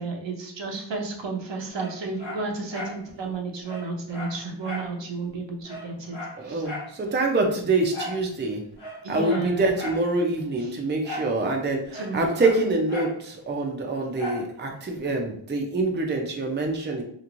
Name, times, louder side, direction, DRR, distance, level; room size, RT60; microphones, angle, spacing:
voice 1, 0.0-6.2 6.4-6.6 9.0-9.7 10.6-10.7 11.9-12.2, right 4 dB, 60° right, 1 dB, 0.8 m, -32 dB
Dog, 1.7-3.0 3.3-3.4 3.6-4.9 5.3-5.4 5.6-6.9 7.9-8.2 8.7-10.1 11.0-11.4 11.6-13.2 14.2-14.5 15.0-15.1, left 1 dB, 90° left, 1.1 m, -37 dB
voice 2, 6.4-8.6 9.1-17.0, right 2 dB, 20° right, 1 dB, 0.6 m, -25 dB
3.0 x 2.5 x 2.5 m, 0.64 s
cardioid pair, 40°, 49 cm